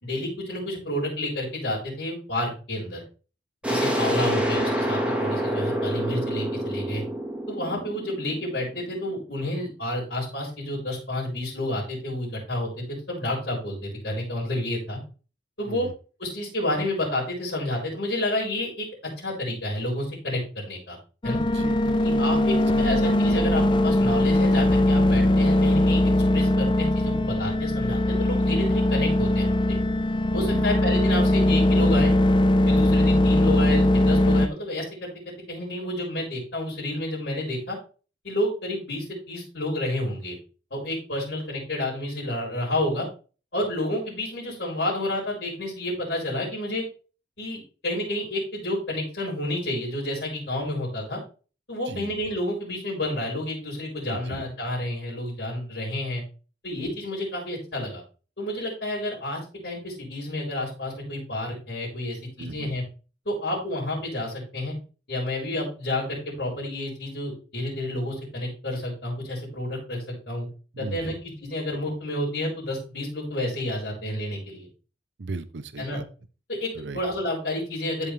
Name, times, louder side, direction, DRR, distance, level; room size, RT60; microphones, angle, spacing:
voice 1, 0.0-3.0 3.6-7.0 7.5-15.0 15.6-15.9 16.2-18.9 19.2-21.0 21.2-21.4 22.0-29.8 30.3-32.1 32.7-37.8 38.2-40.4 40.7-43.1 43.5-46.8 47.4-51.2 51.7-56.2 56.6-58.0 58.4-62.8 63.3-64.7 65.1-70.0 70.3-70.5 70.8-74.7 75.8-76.0 76.5-78.1, left 1 dB, 65° left, -6 dB, 5.2 m, -30 dB
sound 1, 3.6-9.1, right 1 dB, 5° right, 2.0 m, -27 dB
sound 2, 21.2-34.5, left 1 dB, 25° left, 0.6 m, -20 dB
voice 2, 21.4-22.9 30.5-30.7 51.9-52.1 54.1-54.4 62.4-62.7 70.7-71.2 75.2-76.0 76.7-77.0, right 3 dB, 80° right, 13 dB, 0.7 m, -36 dB
13.5 x 5.4 x 3.4 m, 0.36 s
head